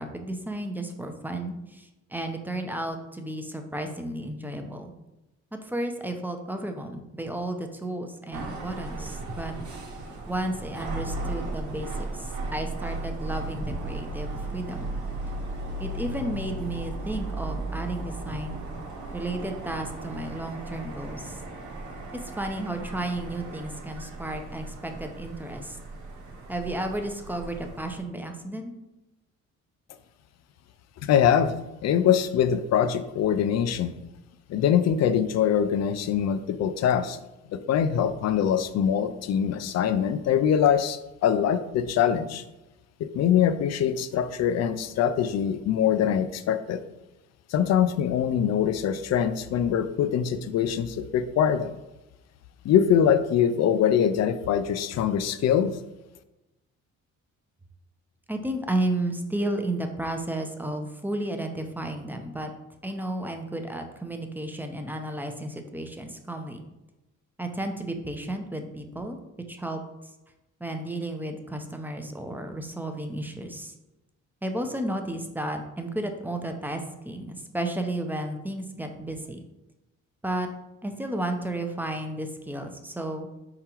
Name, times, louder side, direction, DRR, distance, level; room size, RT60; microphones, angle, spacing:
voice 1, 0.0-4.9 5.5-9.5 10.3-14.9 15.8-18.7 19.1-21.4 22.3-25.8 26.5-28.7 58.3-62.5 62.8-66.6 67.4-69.2 69.5-69.8 70.6-73.7 74.4-79.4 80.2-80.5 80.8-83.3, right 1 dB, 5° right, 5 dB, 0.5 m, -33 dB
sound 1, 8.3-28.0, right 2 dB, 70° right, 1.1 m, -36 dB
voice 2, 31.0-31.5 31.8-33.9 34.5-37.2 37.5-42.4 43.0-46.8 47.5-51.7 52.6-55.7, left 8 dB, 60° left, 12 dB, 0.4 m, -23 dB
4.5 x 3.8 x 2.9 m, 1.0 s
cardioid pair, 90°, 30 cm